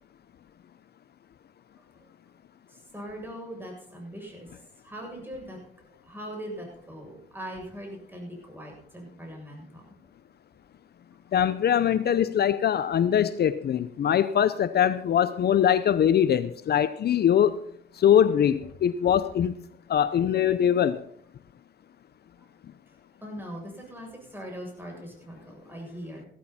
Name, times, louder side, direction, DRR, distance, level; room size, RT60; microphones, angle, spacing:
voice 1, 2.7-5.6 6.0-9.9 22.4-22.5 23.2-26.3, equal, 10° right, 0 dB, 7.6 m, -41 dB
voice 2, 11.3-17.6 18.0-19.5 19.9-21.0, left 9 dB, 55° left, 13 dB, 0.7 m, -22 dB
16.0 x 13.0 x 4.3 m, 0.63 s
cardioid pair, 90°, 20 cm